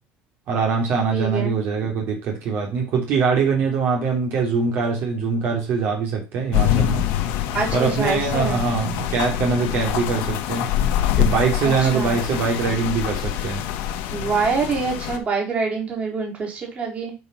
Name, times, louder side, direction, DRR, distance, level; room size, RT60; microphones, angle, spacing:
voice 1, 0.5-7.0 7.7-10.7 11.2-13.6, right 5 dB, 55° right, 0 dB, 3.0 m, -23 dB
voice 2, 1.1-1.6 7.5-8.6 11.6-12.2 14.1-17.2, right 5 dB, 30° right, -1 dB, 3.6 m, -25 dB
sound 1, 6.5-15.2, left 10 dB, 80° left, 1.5 m, -25 dB
7.8 x 5.4 x 5.7 m, 0.30 s
cardioid pair, 155°, 4 cm